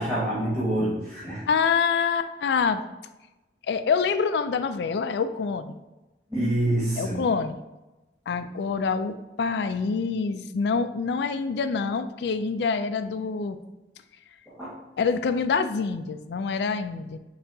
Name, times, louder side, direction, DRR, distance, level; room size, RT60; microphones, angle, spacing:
voice 1, 0.0-1.4 6.3-7.3 14.5-14.8, right 1 dB, 5° right, -8 dB, 1.0 m, -26 dB
voice 2, 1.5-2.8 3.7-5.8 7.0-7.6 8.3-13.6 15.0-17.2, left 5 dB, 75° left, 11 dB, 0.3 m, -26 dB
6.8 x 2.8 x 2.7 m, 1.1 s
head